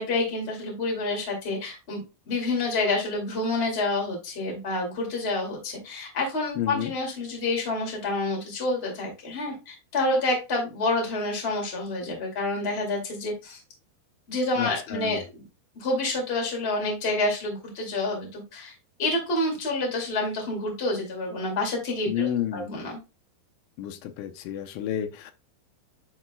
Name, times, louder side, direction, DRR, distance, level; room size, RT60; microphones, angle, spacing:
voice 1, 0.0-13.6 14.3-15.4 15.7-18.7 19.0-23.0, left 2 dB, 25° left, 1.5 m, -28 dB
voice 2, 6.6-6.9 14.6-15.2 22.1-22.7 23.8-25.3, left 11 dB, 90° left, 3.1 m, -30 dB
11.0 x 4.1 x 2.2 m
omnidirectional pair, 5.0 m